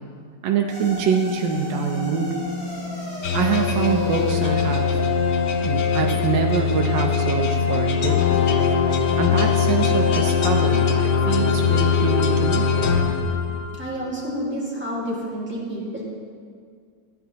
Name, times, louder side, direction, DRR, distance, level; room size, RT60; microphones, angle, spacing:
voice 1, 0.4-2.3 3.3-5.0 5.6-8.5 9.2-12.7, right 6 dB, 80° right, 1 dB, 1.3 m, -25 dB
sound 1, 0.7-9.2, left 2 dB, 25° left, 2.8 m, -35 dB
sound 2, 3.2-13.9, left 6 dB, 70° left, 0.6 m, -21 dB
voice 2, 13.8-16.0, equal, 5° right, -7 dB, 1.8 m, -29 dB
14.0 x 9.0 x 2.8 m, 2.1 s
omnidirectional pair, 2.0 m